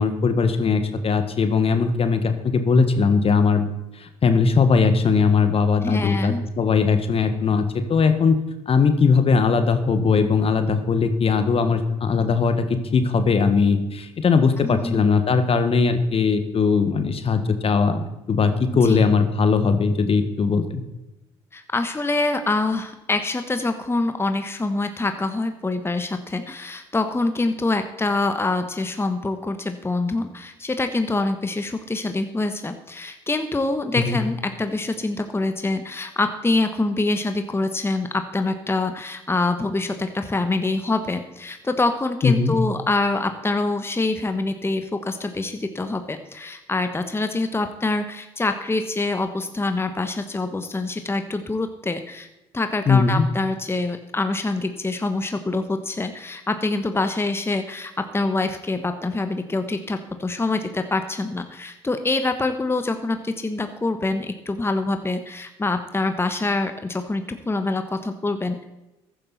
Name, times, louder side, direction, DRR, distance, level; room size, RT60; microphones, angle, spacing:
voice 1, 0.0-3.7 4.0-8.4 8.7-20.8 34.0-34.2 42.2-42.5 52.9-53.3, left 5 dB, 45° left, 9 dB, 1.6 m, -20 dB
voice 2, 5.8-6.4 14.6-15.0 18.8-19.0 21.5-52.3 52.5-68.6, left 2 dB, 15° left, 8 dB, 1.3 m, -25 dB
14.5 x 12.0 x 4.2 m, 0.96 s
hypercardioid pair, 50°, 14 cm